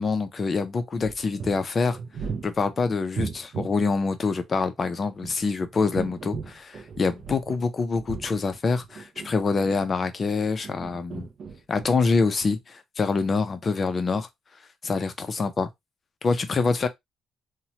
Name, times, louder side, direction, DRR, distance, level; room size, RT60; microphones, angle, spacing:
voice 1, 0.0-2.0 2.4-11.3 11.7-14.3 14.8-15.7 16.2-16.9, left 4 dB, 30° left, 0.4 m, -25 dB
sound 1, 0.9-3.8 5.0-7.7 7.9-10.1 10.6-12.1 12.4-12.5, right 5 dB, 45° right, 0.4 m, -37 dB
2.8 x 2.0 x 2.8 m
cardioid pair, 160°, 0 cm